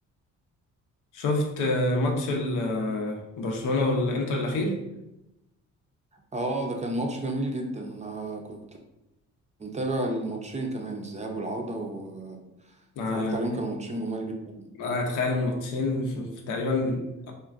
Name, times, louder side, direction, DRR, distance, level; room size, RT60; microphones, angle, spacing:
voice 1, 1.1-4.8 13.0-13.6 14.8-17.3, left 2 dB, 85° left, 1 dB, 0.7 m, -27 dB
voice 2, 6.3-8.6 9.6-12.4 13.1-14.7, right 1 dB, 25° right, 2 dB, 0.5 m, -31 dB
3.7 x 2.2 x 2.4 m, 0.91 s
cardioid pair, 90°, 30 cm